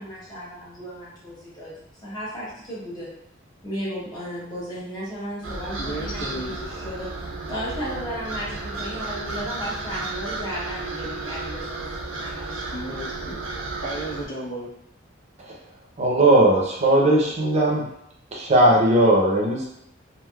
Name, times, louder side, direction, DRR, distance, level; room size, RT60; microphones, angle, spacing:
voice 1, 0.0-3.1 3.6-13.0, equal, 20° left, -8 dB, 1.0 m, -35 dB
sound 1, 5.4-14.2, right 3 dB, 75° right, 0.6 m, -33 dB
voice 2, 5.8-6.5 12.7-13.4 13.8-14.7, right 1 dB, 75° left, -4 dB, 1.0 m, -33 dB
voice 3, 16.0-17.8 18.3-19.7, right 1 dB, 35° right, -2 dB, 0.6 m, -18 dB
3.3 x 2.5 x 2.3 m, 0.75 s
head